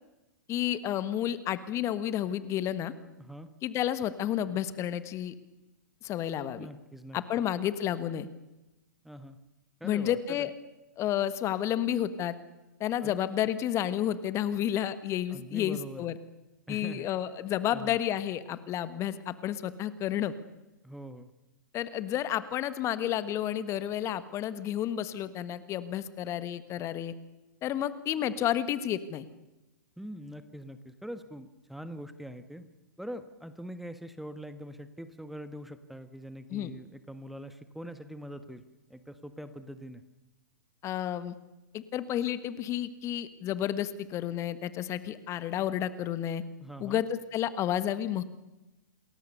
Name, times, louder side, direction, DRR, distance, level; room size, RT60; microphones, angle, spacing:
voice 1, 0.5-2.9 3.6-5.3 6.0-6.7 7.1-8.3 9.8-10.5 11.0-12.3 12.8-16.1 16.7-20.3 21.7-27.1 27.6-29.3 36.5-36.7 40.8-41.3 41.7-46.4 46.8-48.2, left 11 dB, 30° left, 14 dB, 1.5 m, -31 dB
voice 2, 3.2-3.5 6.6-7.2 9.0-9.4 9.8-10.5 13.0-13.2 15.3-16.1 16.7-17.1 17.7-18.0 20.8-21.3 30.0-32.6 33.0-38.6 38.9-40.0 46.6-47.0, equal, ahead, 11 dB, 1.4 m, -43 dB
28.0 x 20.5 x 6.8 m, 1.0 s
figure-of-eight pair, 110°, 10 cm